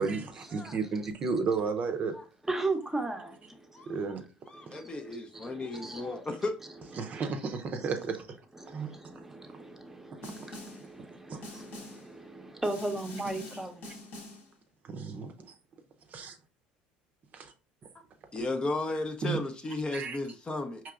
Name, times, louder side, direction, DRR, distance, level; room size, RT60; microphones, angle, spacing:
voice 1, 0.0-2.2 3.9-4.2 7.0-8.3 8.7-8.9 11.3-11.4 14.9-15.5 17.3-17.5 19.2-19.4 19.9-20.2, right 5 dB, 40° right, 0.6 m, -32 dB
voice 2, 2.5-4.2 4.5-6.1 6.9-7.2 7.8-7.9 8.5-14.0, right 2 dB, 10° right, 0.8 m, -38 dB
voice 3, 4.5-6.6 18.3-20.8, left 2 dB, 25° left, 0.5 m, -34 dB
Snare drum, 10.2-10.9 11.4-12.1 12.6-14.5, left 1 dB, 65° left, 1.0 m, -45 dB
4.5 x 2.9 x 2.4 m
hypercardioid pair, 80°, 4 cm